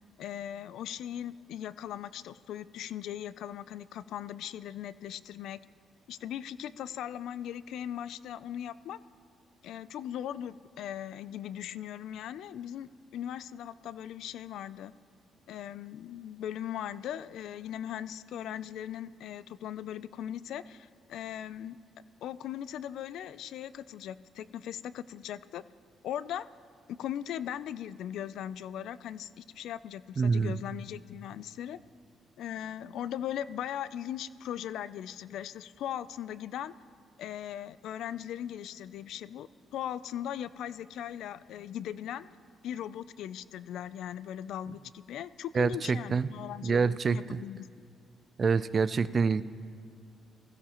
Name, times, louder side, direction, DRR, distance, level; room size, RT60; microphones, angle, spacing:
voice 1, 0.2-5.6 6.1-9.0 9.6-14.9 15.5-21.8 22.2-25.6 26.0-26.5 27.0-31.8 32.4-36.7 37.2-42.4 42.6-47.7, left 10 dB, 80° left, 17 dB, 0.4 m, -39 dB
voice 2, 30.2-30.5 45.5-46.3 46.6-47.4 48.4-49.4, right 5 dB, 40° right, 16 dB, 0.4 m, -26 dB
20.5 x 15.5 x 3.0 m, 2.4 s
cardioid pair, 90°, 0 cm